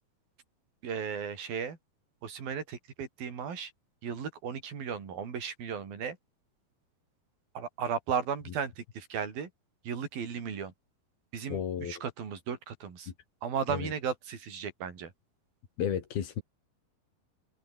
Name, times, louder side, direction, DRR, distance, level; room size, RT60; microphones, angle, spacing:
voice 1, 0.8-1.8 2.2-3.7 4.0-6.2 7.6-9.5 9.8-10.7 11.3-13.1 13.4-15.1, right 7 dB, 75° right, 5.8 m, -35 dB
voice 2, 11.5-12.0 13.1-13.2 13.7-13.9 15.8-16.4, left 9 dB, 90° left, 4.6 m, -33 dB
omnidirectional pair, 4.2 m